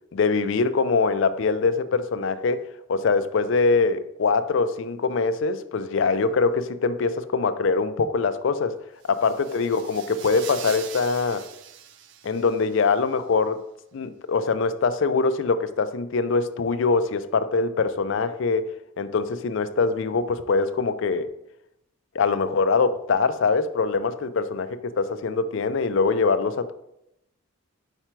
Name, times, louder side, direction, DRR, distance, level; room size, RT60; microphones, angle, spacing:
voice 1, 0.1-2.6 2.9-8.7 9.1-11.4 12.2-13.6 13.9-18.6 19.0-21.3 22.1-26.7, left 4 dB, 60° left, 11 dB, 0.4 m, -23 dB
sound 1, 9.0-12.9, right 10 dB, 55° right, 0.4 m, -42 dB
4.9 x 4.5 x 4.4 m, 0.81 s
head